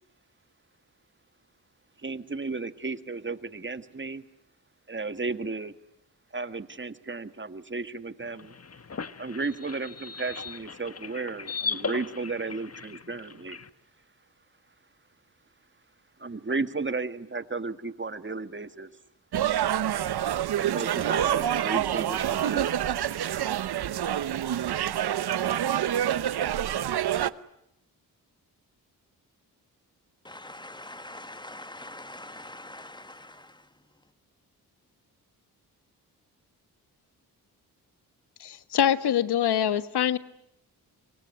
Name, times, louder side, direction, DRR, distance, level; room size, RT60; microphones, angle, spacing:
voice 1, 2.0-4.2 4.9-5.7 6.3-8.5 9.2-13.6 16.2-18.9 20.6-22.7, right 3 dB, 30° right, 11 dB, 1.9 m, -34 dB
sound 1, 8.2-13.7, left 5 dB, 40° left, 1.4 m, -38 dB
sound 2, 19.3-27.3, right 11 dB, 75° right, 1.0 m, -27 dB
voice 2, 30.3-33.6, left 1 dB, 10° left, 12 dB, 1.7 m, -43 dB
voice 3, 38.4-40.2, left 10 dB, 75° left, 13 dB, 1.5 m, -24 dB
26.0 x 23.5 x 9.7 m, 0.80 s
cardioid pair, 50°, 40 cm